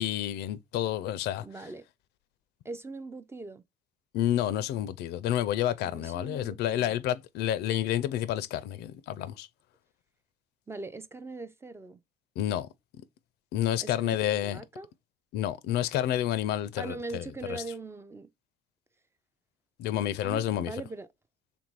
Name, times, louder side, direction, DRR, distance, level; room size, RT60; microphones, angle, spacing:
voice 1, 0.0-1.4 4.1-9.5 12.4-12.7 13.5-14.6 15.3-17.2 19.8-20.7, left 12 dB, 75° left, 0.4 m, -29 dB
voice 2, 1.4-1.9 2.6-3.6 5.8-7.0 10.7-12.0 13.8-14.9 16.8-18.3 20.2-21.1, right 3 dB, 15° right, 0.3 m, -41 dB
3.5 x 2.5 x 4.6 m
cardioid pair, 110°, 17 cm